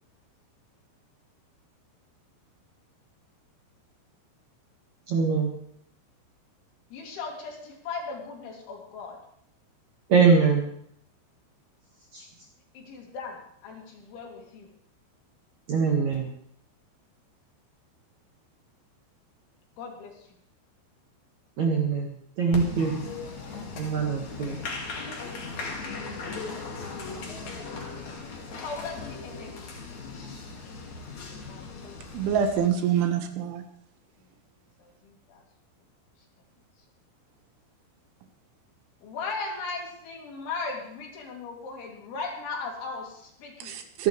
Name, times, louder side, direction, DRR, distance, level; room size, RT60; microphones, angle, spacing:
voice 1, 5.1-5.6 10.1-10.7 12.1-12.2 15.7-16.3 21.6-22.1 22.4-22.9 23.8-24.6, right 5 dB, 50° right, 0 dB, 2.3 m, -23 dB
voice 2, 6.9-9.2 12.8-14.7 19.8-20.2 28.6-29.5 29.9-30.5 31.4-32.0 34.8-35.4 39.0-43.8, left 4 dB, 70° left, 0 dB, 5.3 m, -38 dB
Applause, 22.5-32.7, left 4 dB, 45° left, 2.9 m, -38 dB
voice 3, 32.1-33.6 43.6-44.1, right 8 dB, 80° right, 6 dB, 3.9 m, -25 dB
25.5 x 11.5 x 3.3 m, 0.68 s
omnidirectional pair, 5.5 m